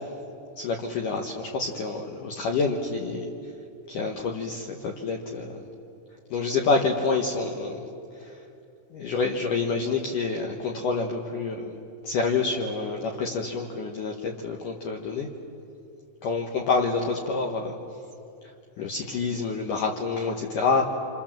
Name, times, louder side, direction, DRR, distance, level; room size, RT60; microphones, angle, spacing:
voice 1, 0.6-3.3 3.9-5.6 6.3-7.8 8.1-8.4 8.9-11.8 12.0-15.3 16.2-17.8 18.8-20.8, left 4 dB, 80° left, 1 dB, 1.8 m, -27 dB
28.5 x 27.0 x 7.5 m, 2.7 s
omnidirectional pair, 5.8 m